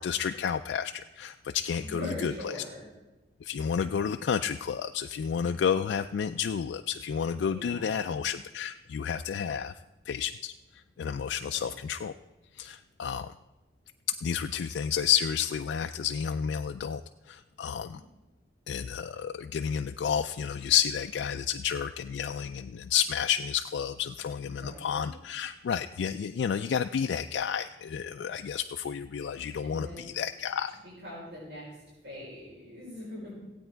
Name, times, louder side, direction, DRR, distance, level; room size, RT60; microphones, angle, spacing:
voice 1, 0.0-2.5 3.4-9.7 10.1-10.5 11.0-12.1 12.6-13.3 14.2-17.0 17.3-18.0 18.7-30.7, left 8 dB, 85° left, 7 dB, 0.3 m, -31 dB
voice 2, 1.7-2.8 3.7-3.9 7.3-8.2 11.4-11.8 24.4-24.9 29.6-30.1 30.8-33.3, left 1 dB, 65° right, -7 dB, 4.9 m, -42 dB
15.5 x 8.7 x 4.5 m, 1.1 s
head